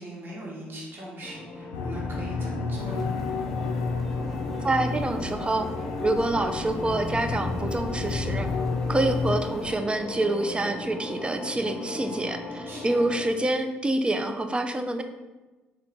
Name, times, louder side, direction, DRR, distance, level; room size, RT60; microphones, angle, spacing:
voice 1, 0.0-3.2 12.6-13.0, right 1 dB, 40° right, -4 dB, 1.5 m, -40 dB
sound 1, 1.2-13.2, left 2 dB, 35° left, 0.8 m, -38 dB
sound 2, 1.7-9.4, left 4 dB, 75° left, 0.3 m, -31 dB
sound 3, 2.7-9.8, equal, 5° left, 0.8 m, -43 dB
voice 2, 4.6-5.7 6.0-8.5 8.9-15.0, right 2 dB, 20° right, 7 dB, 0.4 m, -27 dB
3.7 x 2.7 x 3.5 m, 1.2 s
figure-of-eight pair, 45°, 6 cm